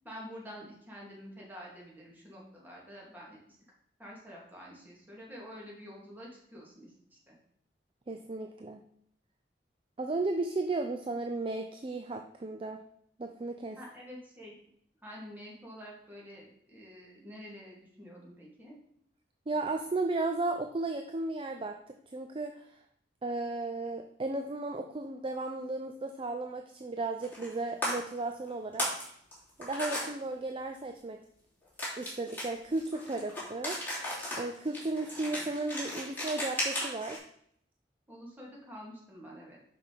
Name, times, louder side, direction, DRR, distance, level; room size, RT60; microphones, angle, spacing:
voice 1, 0.0-3.6 4.0-7.3 13.7-14.5 15.0-18.8 38.1-39.6, equal, 10° right, -4 dB, 2.3 m, -48 dB
voice 2, 8.1-8.8 10.0-12.8 13.2-13.8 19.5-22.7 23.2-28.9 29.6-31.2 32.0-33.8 34.4-37.2, right 2 dB, 30° right, 5 dB, 0.5 m, -34 dB
sound 1, 27.2-27.6 27.8-27.9 28.5-29.1 29.3-30.1 31.8-37.2, left 1 dB, 10° left, 3.2 m, -35 dB
5.9 x 5.5 x 5.1 m, 0.67 s
head